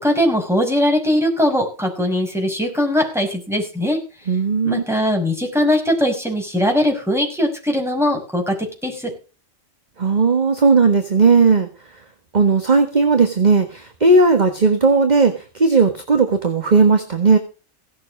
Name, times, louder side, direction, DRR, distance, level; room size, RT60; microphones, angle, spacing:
voice 1, 0.0-4.0 4.6-9.1, left 1 dB, ahead, 1 dB, 5.7 m, -20 dB
voice 2, 4.3-4.8 10.0-11.7 12.3-17.4, right 4 dB, 35° right, 6 dB, 1.6 m, -16 dB
17.0 x 7.1 x 6.3 m, 0.34 s
omnidirectional pair, 1.3 m